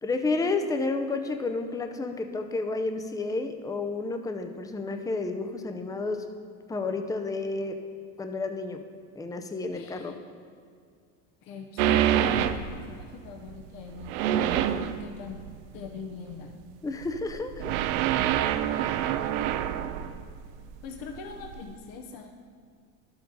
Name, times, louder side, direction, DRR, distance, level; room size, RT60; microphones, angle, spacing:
voice 1, 0.0-6.3 6.7-7.8 8.2-8.8 9.2-10.1 16.8-17.7, left 3 dB, 10° left, 6 dB, 0.6 m, -31 dB
voice 2, 9.7-10.2 11.4-15.4 15.7-16.6 20.8-22.3, left 5 dB, 55° left, 4 dB, 1.0 m, -41 dB
sound 1, 11.8-13.1 13.5-15.8 16.3-16.7 17.0-20.7 21.0-21.6, right 11 dB, 75° right, 0.6 m, -27 dB
12.0 x 7.0 x 3.9 m, 2.2 s
supercardioid pair, 100°, 43 cm